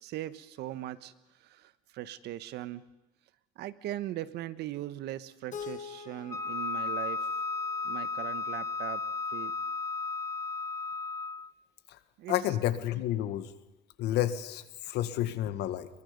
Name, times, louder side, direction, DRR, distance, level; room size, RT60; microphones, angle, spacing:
voice 1, 0.0-1.1 1.4-2.8 3.6-7.2 7.8-9.0 9.3-9.5 12.2-12.4, right 13 dB, 80° right, 15 dB, 1.3 m, -39 dB
Keyboard (musical), 5.5-8.4, left 7 dB, 45° left, 2.1 m, -45 dB
Wind instrument woodwind instrument, 6.3-11.5, left 4 dB, 20° left, 1.0 m, -34 dB
voice 2, 12.3-13.5 14.0-15.9, left 12 dB, 85° left, 12 dB, 1.8 m, -30 dB
28.5 x 23.0 x 5.3 m, 1.0 s
cardioid pair, 110°, 17 cm